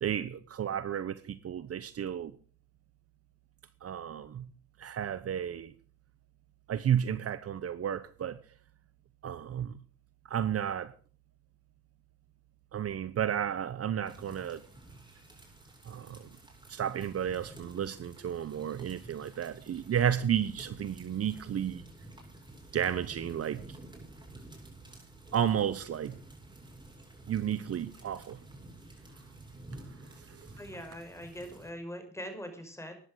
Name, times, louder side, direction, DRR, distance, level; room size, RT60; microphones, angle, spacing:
voice 1, 0.0-2.3 3.8-4.5 4.8-5.7 6.7-8.4 9.2-9.7 10.3-10.9 12.7-14.6 15.8-16.3 16.7-21.8 22.7-23.6 25.3-26.2 27.3-28.4 30.3-30.4, right 9 dB, 50° right, 15 dB, 1.0 m, -32 dB
sound 1, 14.0-31.7, right 2 dB, 15° right, 8.0 m, -51 dB
voice 2, 30.6-32.9, equal, 10° left, 6 dB, 5.5 m, -42 dB
14.5 x 10.5 x 6.4 m, 0.41 s
cardioid pair, 90°, 30 cm